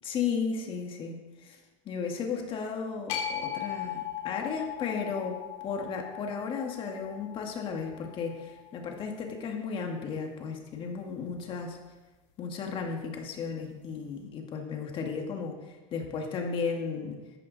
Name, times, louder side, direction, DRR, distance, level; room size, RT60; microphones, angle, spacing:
voice 1, 0.0-1.6 1.9-11.8 12.4-17.2, left 5 dB, 35° left, 2 dB, 1.9 m, -34 dB
sound 1, 3.1-9.3, left 9 dB, 60° left, 3.0 m, -39 dB
14.5 x 13.0 x 4.1 m, 1.2 s
supercardioid pair, 150°, 15 cm